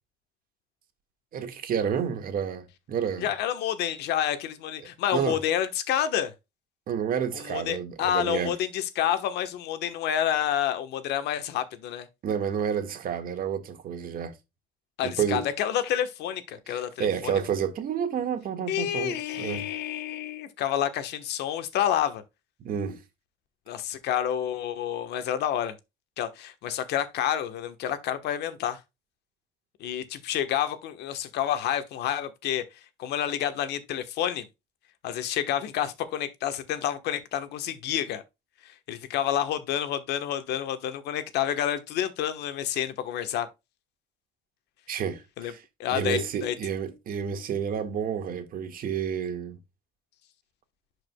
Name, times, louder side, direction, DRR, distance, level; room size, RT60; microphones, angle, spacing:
voice 1, 1.3-3.3 5.1-5.4 6.9-8.5 12.2-14.3 15.0-15.5 16.7-19.7 22.6-23.0 44.9-45.6 45.9-49.6, right 8 dB, 60° right, 1.7 m, -30 dB
voice 2, 3.2-6.3 7.5-12.1 15.0-17.3 18.7-22.2 23.7-25.8 26.2-28.8 29.8-32.6 33.0-34.5 35.0-38.2 38.6-43.5 45.4-45.5 45.8-46.5, left 10 dB, 80° left, 1.2 m, -29 dB
11.0 x 4.9 x 2.2 m
cardioid pair, 110°, 17 cm